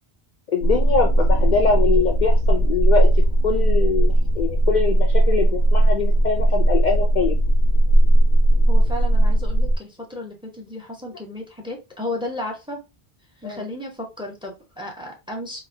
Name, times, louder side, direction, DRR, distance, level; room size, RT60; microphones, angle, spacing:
voice 1, 0.5-7.4 13.4-13.6, left 5 dB, 55° left, 0 dB, 0.6 m, -23 dB
sound 1, 0.6-9.8, right 1 dB, 90° left, 1.1 m, -17 dB
voice 2, 8.7-12.8 13.4-15.6, left 1 dB, 5° right, 2 dB, 0.8 m, -33 dB
4.0 x 2.8 x 2.6 m, 0.25 s
omnidirectional pair, 1.1 m